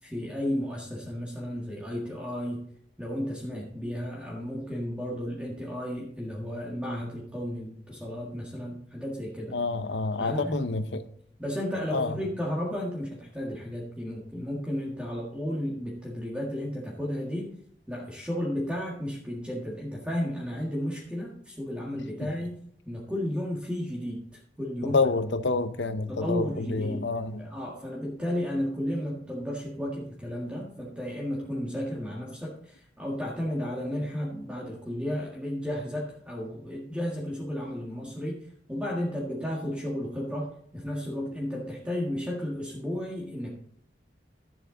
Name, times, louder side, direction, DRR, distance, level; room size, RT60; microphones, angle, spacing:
voice 1, 0.0-2.6 3.0-9.5 10.2-10.6 11.4-17.5 17.9-22.6 22.8-25.0 26.1-27.0 27.4-38.4 38.7-43.5, equal, 5° right, -4 dB, 1.7 m, -33 dB
voice 2, 9.5-11.0 11.9-12.2 22.2-22.3 24.8-27.5, left 3 dB, 75° left, 12 dB, 0.8 m, -28 dB
11.0 x 8.0 x 3.8 m, 0.65 s
head